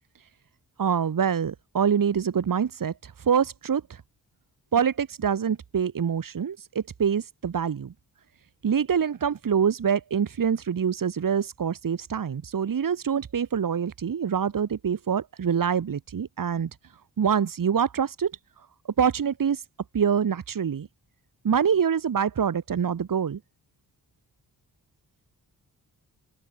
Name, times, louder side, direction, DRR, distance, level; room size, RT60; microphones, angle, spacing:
voice 1, 0.8-4.0 4.7-7.9 8.6-16.7 17.2-18.3 19.0-19.6 19.9-20.9 21.4-23.4, right 7 dB, 60° right, 2.6 m, -25 dB
open air
cardioid pair, 80°, 38 cm